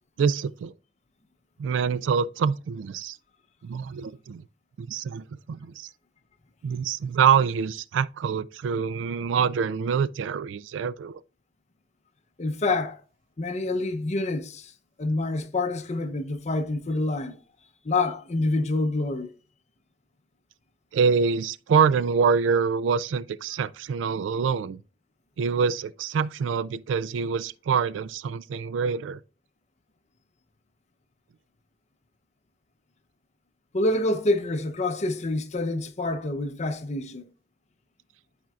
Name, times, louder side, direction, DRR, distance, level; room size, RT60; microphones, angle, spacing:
voice 1, 0.2-0.7 1.6-3.2 3.6-4.4 4.8-5.9 6.6-11.2 20.9-24.8 25.4-29.2, right 6 dB, 85° right, 0.3 m, -25 dB
voice 2, 12.4-13.0 13.4-14.7 15.0-17.4 17.8-19.3 33.7-37.3, left 2 dB, 40° left, 0.7 m, -27 dB
12.0 x 4.4 x 2.4 m
head